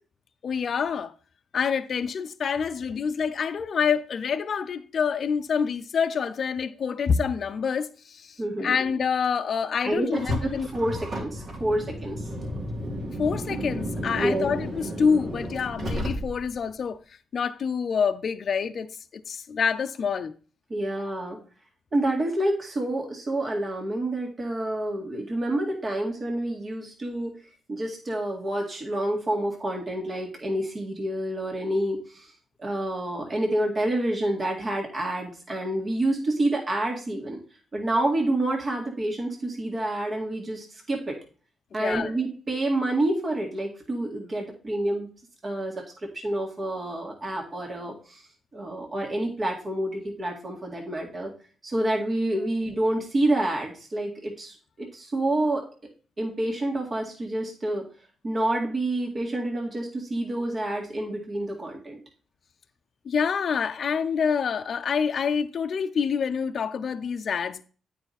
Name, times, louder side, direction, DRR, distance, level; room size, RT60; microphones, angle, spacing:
voice 1, 0.4-1.1 1.5-10.7 13.2-17.0 17.3-18.9 19.3-20.3 41.8-42.1 63.1-67.6, left 6 dB, 60° left, 0.5 m, -27 dB
voice 2, 8.4-8.7 9.8-12.2 14.2-14.5 20.7-21.4 21.9-27.3 27.7-32.3 32.6-37.4 37.7-41.2 41.7-45.1 45.4-45.7 46.0-48.2 48.5-51.3 51.6-55.7 56.2-57.8 58.2-62.0, right 1 dB, 40° right, 2.1 m, -28 dB
Car, 10.1-16.6, equal, 60° right, 2.5 m, -32 dB
8.9 x 5.0 x 4.2 m
supercardioid pair, 60°, 0 cm